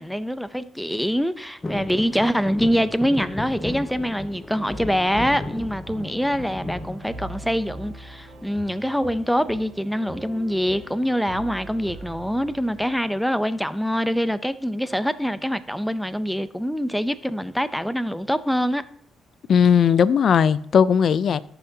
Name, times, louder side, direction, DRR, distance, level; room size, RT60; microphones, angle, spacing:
voice 1, 0.0-18.8, equal, ahead, 0.5 m, -24 dB
sound 1, 1.6-7.8 8.2-8.8 10.1-10.5 10.8-10.9 11.2-11.5 12.3-13.2 13.7-13.8, left 2 dB, 20° left, 0.9 m, -35 dB
sound 2, 5.9-13.1, right 2 dB, 85° right, 1.9 m, -42 dB
voice 2, 19.5-21.4, left 7 dB, 55° left, 0.4 m, -17 dB
14.0 x 5.7 x 2.8 m
cardioid pair, 90°, 0 cm